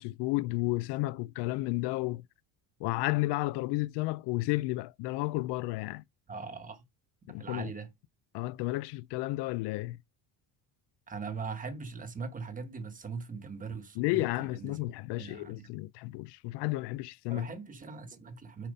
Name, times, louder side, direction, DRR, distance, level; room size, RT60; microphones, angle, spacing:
voice 1, 0.0-2.2 2.8-6.0 7.3-7.7 8.3-10.0 14.0-17.5, left 20 dB, 75° left, 0.5 m, -32 dB
voice 2, 6.3-6.8 7.4-7.9 11.1-14.8 15.2-15.7 17.3-18.7, right 5 dB, 20° right, 1.1 m, -40 dB
8.9 x 4.2 x 5.2 m
cardioid pair, 160°, 42 cm